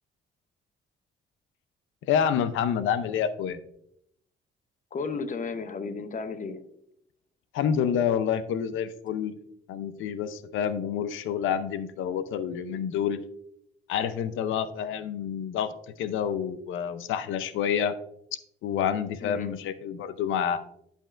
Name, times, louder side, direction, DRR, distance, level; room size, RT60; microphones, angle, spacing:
voice 1, 2.1-3.6 7.5-9.3 9.7-13.2 13.9-15.7 16.0-17.9 18.6-20.6, left 8 dB, 85° left, 13 dB, 0.6 m, -28 dB
voice 2, 4.9-6.6 19.2-19.5, left 4 dB, 40° left, 10 dB, 0.8 m, -34 dB
11.0 x 5.4 x 2.5 m, 0.74 s
cardioid pair, 90°, 20 cm